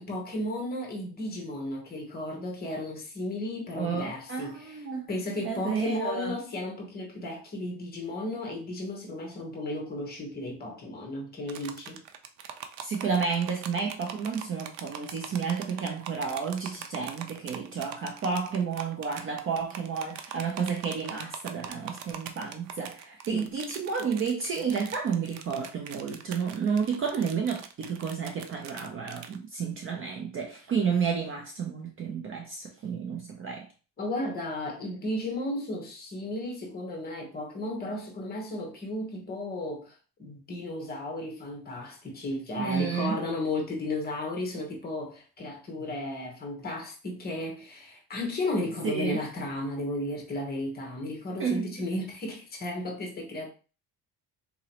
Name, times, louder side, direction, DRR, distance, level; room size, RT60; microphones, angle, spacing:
voice 1, 0.0-12.0 23.3-23.4 34.0-39.9 40.2-53.5, left 1 dB, 25° left, 1.1 m, -34 dB
voice 2, 3.8-5.1 5.4-6.3 12.8-33.7 42.6-43.2 48.8-49.2 51.4-51.6, right 6 dB, 30° right, 0.5 m, -31 dB
sound 1, 11.5-29.4, right 8 dB, 80° right, 0.6 m, -42 dB
4.0 x 3.0 x 2.9 m
cardioid pair, 160°, 41 cm